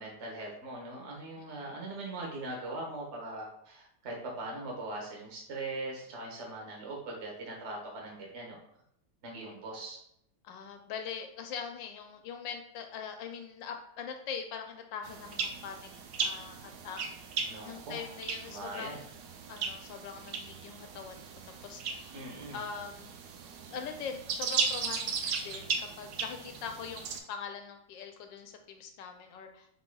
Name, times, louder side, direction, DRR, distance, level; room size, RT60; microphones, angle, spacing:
voice 1, 0.0-8.6 9.2-10.0 17.4-18.0 18.4-19.0 22.1-22.6, right 2 dB, 45° right, -1 dB, 1.2 m, -41 dB
voice 2, 10.4-15.9 16.2-19.1 19.5-21.2 21.6-22.1 22.5-23.1 23.7-29.7, left 6 dB, 85° left, 5 dB, 1.3 m, -42 dB
sound 1, 15.0-27.2, right 5 dB, 70° right, 1.0 m, -37 dB
5.3 x 3.8 x 2.3 m, 0.72 s
omnidirectional pair, 2.0 m